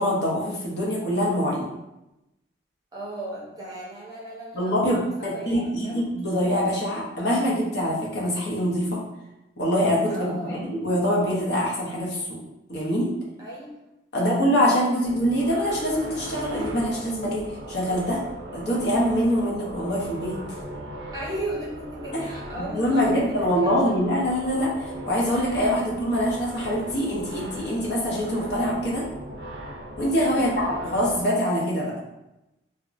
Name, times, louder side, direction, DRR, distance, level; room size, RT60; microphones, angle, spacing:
voice 1, 0.0-1.7 4.5-9.0 9.6-12.4 12.7-13.1 14.1-17.4 17.7-18.2 18.5-20.4 22.1-22.2 22.6-29.0 30.0-31.9, equal, 60° left, -3 dB, 0.7 m, -24 dB
voice 2, 2.9-5.5 5.8-6.0 10.1-10.6 13.4-13.7 14.1-14.4 21.1-24.0 30.3-30.6, right 1 dB, 20° right, -6 dB, 0.6 m, -36 dB
sound 1, 15.0-31.2, right 1 dB, 65° right, 0.5 m, -38 dB
2.8 x 2.0 x 2.4 m, 0.93 s
head